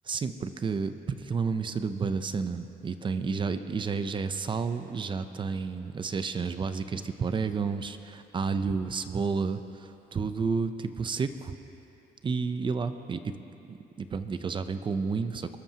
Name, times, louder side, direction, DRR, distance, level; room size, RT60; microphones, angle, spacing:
voice 1, 0.0-11.5 12.2-13.3 13.7-15.6, right 5 dB, 30° right, 10 dB, 0.6 m, -31 dB
22.0 x 13.0 x 2.9 m, 3.0 s
cardioid pair, 110°, 17 cm